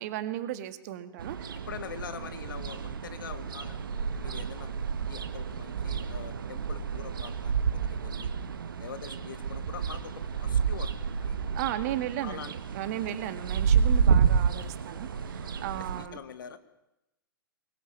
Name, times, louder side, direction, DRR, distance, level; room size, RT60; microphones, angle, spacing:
voice 1, 0.0-1.6 11.5-16.2, right 12 dB, 50° right, 10 dB, 2.1 m, -35 dB
sound 1, 1.2-16.1, right 6 dB, 70° right, 1.6 m, -30 dB
voice 2, 1.7-4.7 5.1-8.4 8.8-11.5 12.2-12.5 15.4-15.6 16.0-16.6, left 8 dB, 65° left, 12 dB, 1.9 m, -44 dB
24.0 x 20.5 x 7.5 m, 0.89 s
figure-of-eight pair, 110°, 12 cm